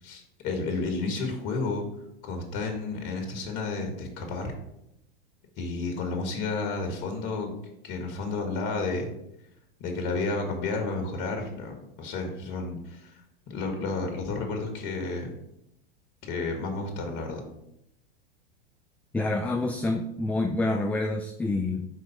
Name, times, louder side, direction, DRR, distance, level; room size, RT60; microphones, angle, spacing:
voice 1, 0.0-1.9 2.2-4.5 5.6-7.5 7.8-9.1 9.8-13.2 13.5-15.3 16.2-17.4, left 3 dB, 50° left, 4 dB, 1.6 m, -31 dB
voice 2, 19.1-21.9, left 2 dB, 5° left, 4 dB, 0.3 m, -27 dB
4.8 x 4.0 x 5.6 m, 0.81 s
hypercardioid pair, 100°, 30 cm